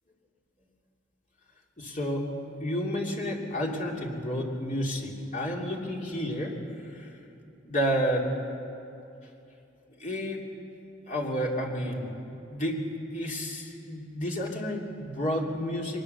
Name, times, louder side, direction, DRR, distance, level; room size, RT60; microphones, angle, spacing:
voice 1, 1.8-2.3 2.6-6.5 6.9-7.1 7.6-8.3 10.0-10.4 11.1-12.8 13.1-16.0, equal, 40° left, -1 dB, 2.8 m, -31 dB
23.0 x 20.5 x 6.8 m, 2.8 s
head